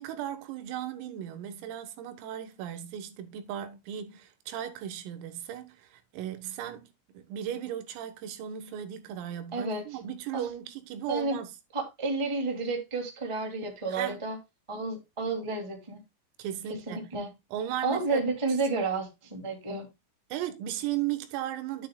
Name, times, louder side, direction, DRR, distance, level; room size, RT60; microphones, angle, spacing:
voice 1, 0.0-11.5 13.9-14.2 16.4-17.1 17.5-18.2 20.3-21.9, right 11 dB, 90° right, 4.0 m, -36 dB
voice 2, 9.5-9.8 10.3-10.4 11.1-11.4 11.7-14.4 14.7-16.0 16.9-17.3 17.8-19.9, right 3 dB, 15° right, 1.2 m, -31 dB
11.0 x 9.5 x 2.3 m
omnidirectional pair, 5.8 m